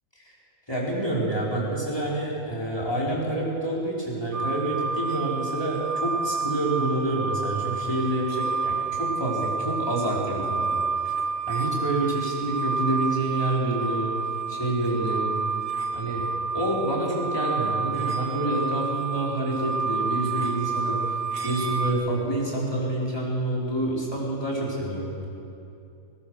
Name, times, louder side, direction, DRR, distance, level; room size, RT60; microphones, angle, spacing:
voice 1, 0.7-10.7 11.5-14.1 14.5-15.3 15.9-16.2 16.5-21.0 21.4-25.1, right 1 dB, 15° left, -5 dB, 5.0 m, -27 dB
sound 1, 4.3-21.9, right 4 dB, 75° right, 2.4 m, -29 dB
21.0 x 20.5 x 6.6 m, 2.6 s
omnidirectional pair, 1.5 m